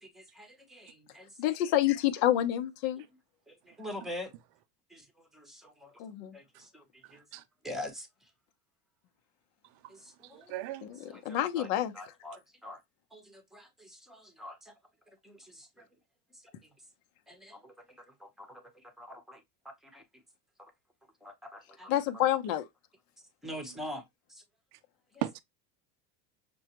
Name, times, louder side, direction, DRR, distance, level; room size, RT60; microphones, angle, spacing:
voice 1, 0.0-1.5 3.5-4.3 4.9-6.0 6.3-7.3 7.6-8.1 9.9-10.5 11.1-11.7 11.9-12.8 13.1-14.7 15.2-15.8 16.3-16.4 17.3-20.0 21.2-21.9 23.4-24.0 24.3-24.4, left 1 dB, ahead, 0.9 m, -45 dB
voice 2, 1.4-3.0 6.0-6.4 10.8-11.0 11.2-11.9 21.9-22.7, left 13 dB, 60° left, 0.8 m, -28 dB
voice 3, 7.0-7.4 10.2-10.9 24.7-24.8 25.2-25.4, right 14 dB, 55° right, 0.6 m, -38 dB
6.1 x 2.3 x 2.9 m
supercardioid pair, 150°, 43 cm